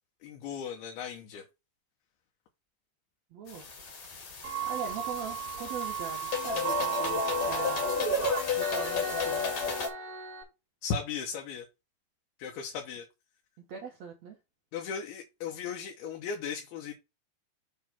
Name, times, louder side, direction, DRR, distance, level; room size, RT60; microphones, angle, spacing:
voice 1, 0.2-1.4 10.8-11.7 12.4-13.1 14.7-16.9, left 6 dB, 75° left, 2.9 m, -36 dB
voice 2, 3.3-3.6 3.9-4.0 4.6-7.9 8.5-9.5 13.6-14.4, right 5 dB, 70° right, 1.6 m, -41 dB
sound 1, 3.5-9.9, left 7 dB, 50° left, 2.0 m, -33 dB
sound 2, 4.4-10.4, right 6 dB, 40° right, 2.7 m, -34 dB
7.3 x 3.2 x 5.8 m
omnidirectional pair, 4.7 m